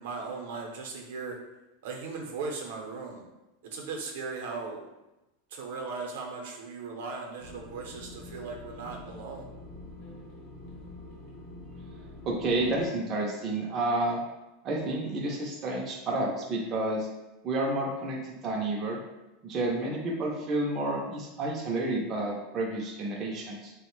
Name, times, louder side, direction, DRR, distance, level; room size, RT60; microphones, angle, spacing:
voice 1, 0.0-1.4 1.8-3.2 3.7-4.9 5.5-9.5, right 4 dB, 75° right, 1 dB, 0.6 m, -38 dB
sound 1, 7.4-12.9, left 2 dB, 45° left, 0.6 m, -45 dB
voice 2, 12.2-14.2 14.6-17.1 17.4-19.0 19.4-23.7, right 2 dB, 25° right, -2 dB, 0.4 m, -30 dB
2.9 x 2.0 x 3.0 m, 0.98 s
supercardioid pair, 165°, 0 cm